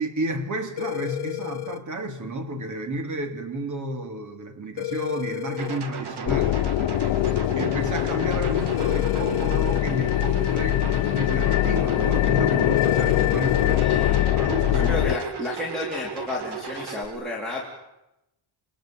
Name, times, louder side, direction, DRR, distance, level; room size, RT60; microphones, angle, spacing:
voice 1, 0.0-6.6 7.6-14.1 14.3-14.9, right 1 dB, 40° right, 7 dB, 3.3 m, -31 dB
sound 1, 0.8-1.8 4.8-5.8 8.8-9.8 12.8-13.8, left 17 dB, 60° left, 1.5 m, -32 dB
sound 2, 5.6-17.0, right 6 dB, 60° right, 2.8 m, -36 dB
sound 3, 6.3-15.2, left 14 dB, 80° left, 1.0 m, -23 dB
voice 2, 13.8-14.3 14.7-17.6, left 2 dB, ahead, -6 dB, 4.0 m, -32 dB
28.5 x 21.5 x 9.0 m, 0.92 s
wide cardioid pair, 170°, 46 cm